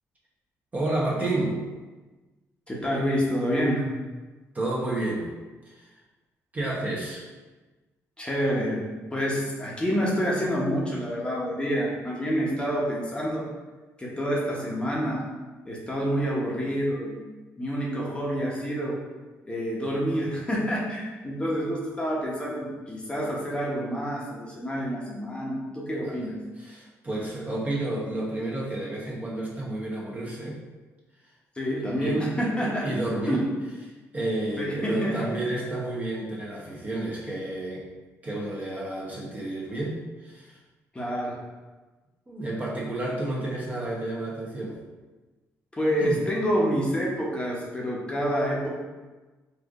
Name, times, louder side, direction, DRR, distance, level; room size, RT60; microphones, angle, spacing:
voice 1, 0.7-1.7 4.5-5.3 5.7-5.9 6.5-7.2 21.4-21.6 26.0-26.3 26.6-30.6 31.8-32.2 32.6-33.4 34.1-37.9 38.2-40.6 42.3-44.8 46.0-46.1, right 2 dB, 25° right, -5 dB, 0.9 m, -31 dB
voice 2, 2.7-3.8 8.2-13.5 14.0-15.3 15.7-17.2 17.6-19.0 19.4-26.4 31.6-32.9 33.3-33.5 34.6-35.2 40.9-41.4 45.8-48.7, equal, 15° left, -5 dB, 0.8 m, -28 dB
4.3 x 2.5 x 2.4 m, 1.2 s
cardioid pair, 90°, 6 cm